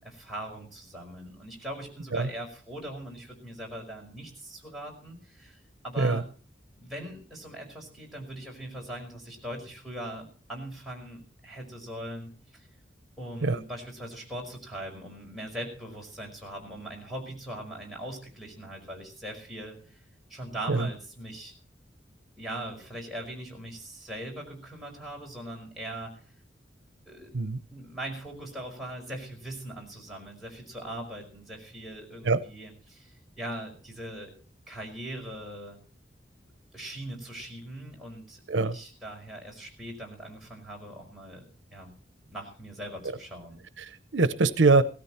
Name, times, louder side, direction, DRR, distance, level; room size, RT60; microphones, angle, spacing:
voice 1, 0.0-6.3 6.8-12.7 13.2-20.0 20.3-21.5 22.4-26.1 27.1-34.3 34.7-35.8 36.7-41.4 41.7-41.9 42.3-43.6, right 1 dB, ahead, -2 dB, 5.3 m, -40 dB
voice 2, 43.8-44.8, right 3 dB, 80° right, 14 dB, 0.7 m, -23 dB
17.5 x 13.5 x 4.3 m, 0.40 s
head